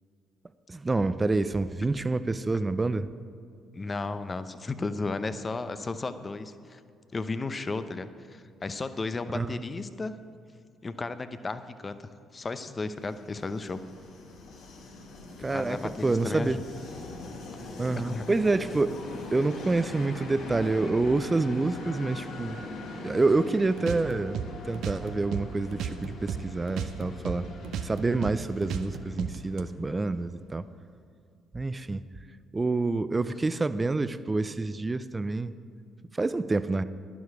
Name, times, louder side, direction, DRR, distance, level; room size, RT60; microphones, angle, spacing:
voice 1, 0.7-3.1 9.3-9.6 15.4-16.6 17.8-19.0 19.3-22.6 23.0-27.5 27.8-30.7 31.5-32.1 32.5-35.5 36.1-36.8, right 3 dB, 25° right, 14 dB, 0.5 m, -27 dB
voice 2, 3.7-6.8 7.1-10.1 10.8-13.8 15.5-16.5 18.0-18.2 29.0-29.2, left 3 dB, 30° left, 11 dB, 0.7 m, -34 dB
Train, 12.8-30.5, left 2 dB, 70° left, 1.7 m, -42 dB
sound 1, 23.8-26.4 26.7-29.6, right 8 dB, 70° right, 0.6 m, -35 dB
11.0 x 11.0 x 4.8 m, 2.3 s
hypercardioid pair, 50°, 0 cm